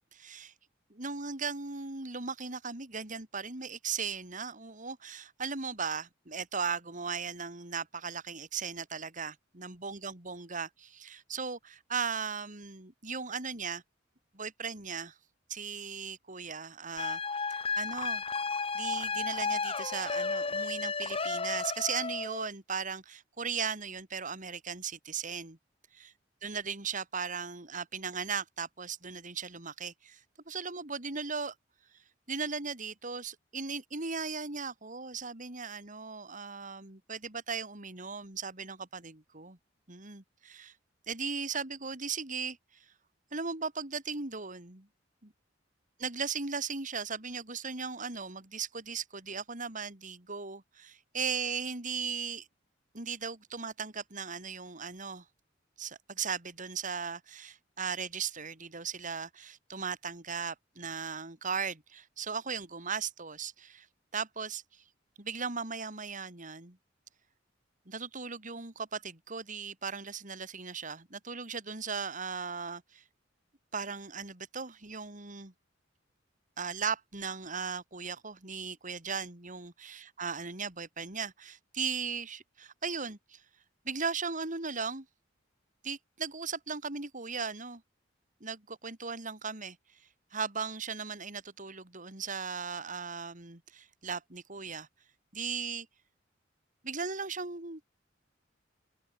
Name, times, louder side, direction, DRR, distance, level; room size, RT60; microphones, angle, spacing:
voice 1, 0.1-0.5 0.9-13.8 14.3-15.1 15.5-17.2 17.5-18.2 18.7-25.6 25.9-26.1 26.4-30.2 30.5-31.5 32.3-39.6 39.9-40.7 41.1-42.6 43.3-44.9 45.2-45.3 46.0-52.5 52.9-55.2 55.8-63.9 64.1-64.6 65.2-66.8 67.9-73.0 73.7-75.5 76.6-83.4 83.8-85.1 85.8-87.8 88.4-89.8 90.3-94.9 95.3-95.9 96.8-97.8, right 5 dB, 45° right, 3.1 m, -37 dB
sound 1, 17.0-22.5, left 4 dB, 30° left, 2.4 m, -33 dB
head